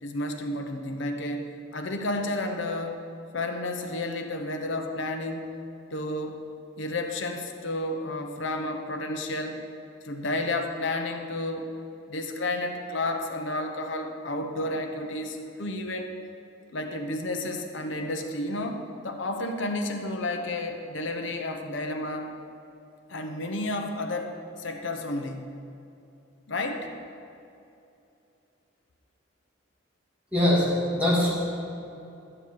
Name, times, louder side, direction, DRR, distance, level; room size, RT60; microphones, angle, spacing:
voice 1, 0.0-3.0 3.3-5.5 5.9-6.4 6.8-9.6 10.0-11.7 12.1-16.1 16.7-22.3 23.1-25.5 26.5-26.9, left 2 dB, 65° left, 4 dB, 0.9 m, -31 dB
voice 2, 30.3-31.3, left 1 dB, 5° right, -7 dB, 2.4 m, -22 dB
12.0 x 7.7 x 4.7 m, 2.7 s
head